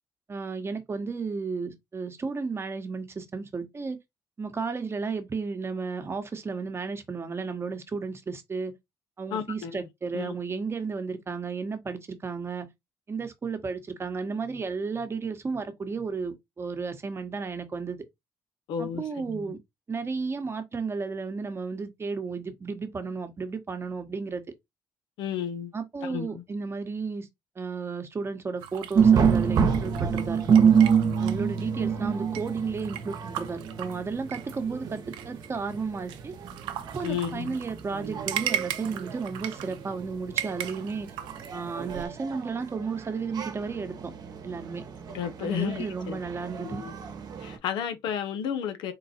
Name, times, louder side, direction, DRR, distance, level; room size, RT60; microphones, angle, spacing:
voice 1, 0.3-4.0 4.4-8.7 9.2-12.7 13.1-18.0 18.8-19.6 19.9-24.4 25.7-27.3 27.6-30.7 31.2-36.3 36.9-41.1 41.5-44.1 44.4-44.8 45.4-46.8, right 4 dB, 35° right, 1.0 m, -33 dB
voice 2, 9.3-9.8 10.1-10.3 18.7-19.5 25.2-25.7 26.0-26.4 37.0-37.6 45.1-46.2 46.6-46.9 47.4-48.9, left 8 dB, 80° left, 0.7 m, -32 dB
sound 1, 28.6-42.1, right 11 dB, 85° right, 0.6 m, -38 dB
sound 2, 28.9-47.6, right 7 dB, 55° right, 1.0 m, -27 dB
3.9 x 2.2 x 4.2 m
cardioid pair, 80°, 8 cm